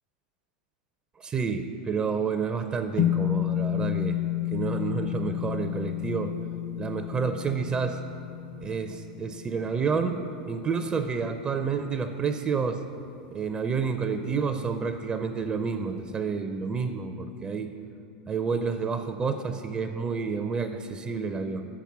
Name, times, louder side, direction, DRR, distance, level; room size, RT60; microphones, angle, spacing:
voice 1, 1.2-4.2 4.5-6.3 6.8-8.0 8.6-10.2 10.5-12.8 13.3-17.7 18.3-21.7, right 5 dB, 25° right, 7 dB, 0.4 m, -29 dB
sound 1, 3.0-11.4, left 13 dB, 40° left, 0.5 m, -31 dB
6.7 x 5.9 x 7.3 m, 2.5 s
hypercardioid pair, 115°, 4 cm